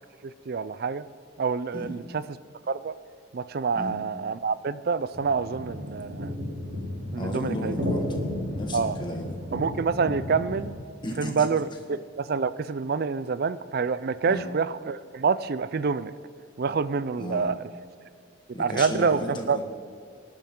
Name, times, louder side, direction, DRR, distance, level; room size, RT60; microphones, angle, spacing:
voice 1, 0.2-1.0 1.4-2.2 2.7-2.9 3.3-6.4 7.1-7.7 8.7-8.9 9.5-10.7 11.2-16.1 16.6-17.6 18.6-19.2 19.5-19.6, right 5 dB, 50° right, 15 dB, 0.4 m, -27 dB
sound 1, 5.1-10.7, left 1 dB, 90° right, 3.6 m, -33 dB
voice 2, 7.2-8.2 8.6-9.3 11.0-11.5 14.2-14.5 17.2-17.5 18.5-19.6, equal, 25° left, 2 dB, 1.7 m, -34 dB
19.0 x 12.0 x 3.8 m, 2.4 s
head